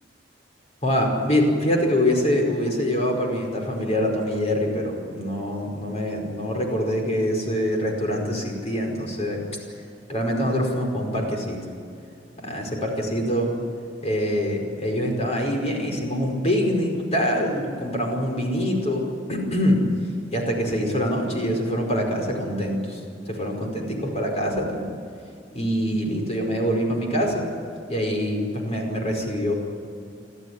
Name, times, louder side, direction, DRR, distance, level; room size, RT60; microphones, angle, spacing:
voice 1, 0.8-9.5 10.1-11.6 12.4-13.5 14.0-19.9 20.3-24.8 25.5-27.5 27.9-29.5, equal, 35° left, 1 dB, 5.0 m, -24 dB
28.5 x 12.5 x 9.9 m, 2.5 s
head